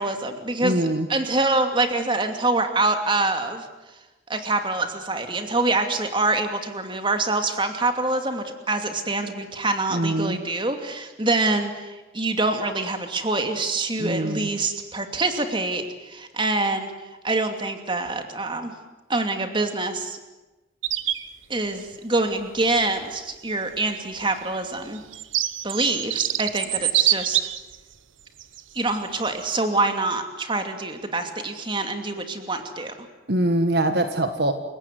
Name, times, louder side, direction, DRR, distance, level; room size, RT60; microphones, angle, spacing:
voice 1, 0.0-3.6 4.3-16.9 17.2-18.7 19.1-20.2 21.5-25.0 25.6-27.4 28.7-32.9, right 2 dB, 25° right, 6 dB, 2.6 m, -25 dB
voice 2, 0.6-1.1 9.9-10.4 14.0-14.5 33.3-34.5, right 1 dB, 55° right, 7 dB, 1.7 m, -23 dB
sound 1, 20.8-21.3 22.8-22.9 24.0-27.8 28.4-28.6 29.2-29.4, right 13 dB, 90° right, 1.1 m, -25 dB
29.5 x 17.0 x 9.5 m, 1.1 s
head